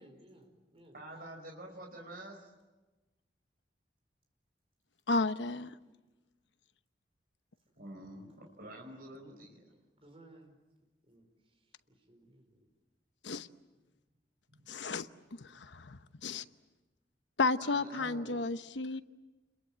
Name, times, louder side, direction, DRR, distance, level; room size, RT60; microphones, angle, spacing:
voice 1, 0.0-1.0 9.7-10.5 11.1-11.3 11.9-12.7, right 1 dB, 35° right, 4 dB, 5.0 m, -59 dB
voice 2, 0.9-2.5 7.8-9.6 14.5-14.6 17.6-18.5, right 1 dB, 55° right, 1 dB, 4.8 m, -48 dB
voice 3, 5.1-5.7 13.2-13.5 14.7-16.4 17.4-19.0, left 3 dB, 90° left, 11 dB, 1.0 m, -33 dB
29.5 x 22.0 x 8.8 m, 1.1 s
head